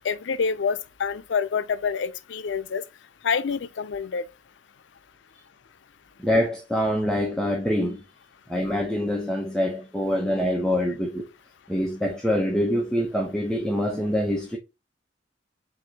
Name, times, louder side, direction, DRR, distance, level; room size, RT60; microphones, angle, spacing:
voice 1, 0.0-2.8 3.2-4.2, left 5 dB, 85° left, 0.5 m, -27 dB
voice 2, 6.2-8.0 8.5-11.3 11.7-14.6, equal, 5° left, 0.7 m, -25 dB
4.8 x 3.8 x 2.8 m
head